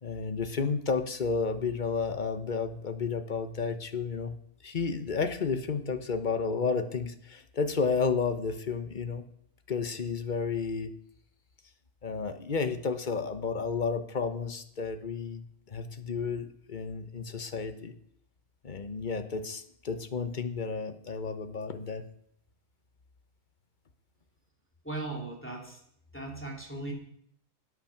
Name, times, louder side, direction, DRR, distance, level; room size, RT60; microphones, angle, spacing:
voice 1, 0.0-4.3 4.6-9.2 9.7-10.9 12.0-17.9 18.6-22.0, left 5 dB, 40° left, 9 dB, 1.1 m, -32 dB
voice 2, 24.8-25.8 26.1-26.9, right 2 dB, 10° left, -1 dB, 2.8 m, -38 dB
13.0 x 8.9 x 5.9 m, 0.70 s
omnidirectional pair, 1.3 m